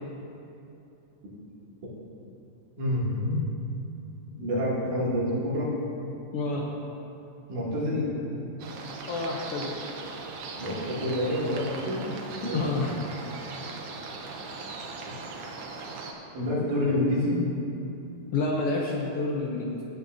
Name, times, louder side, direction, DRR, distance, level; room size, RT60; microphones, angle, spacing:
voice 1, 2.8-3.4 4.4-5.7 7.5-8.1 10.6-12.1 12.4-12.6 16.3-17.5, left 1 dB, 85° right, -7 dB, 4.0 m, -27 dB
voice 2, 6.3-6.7 9.1-9.7 12.5-13.0 18.3-19.8, left 3 dB, 70° left, -2 dB, 1.4 m, -28 dB
sound 1, 8.6-16.1, right 3 dB, 65° right, 1.6 m, -39 dB
17.0 x 9.4 x 2.7 m, 2.8 s
omnidirectional pair, 3.4 m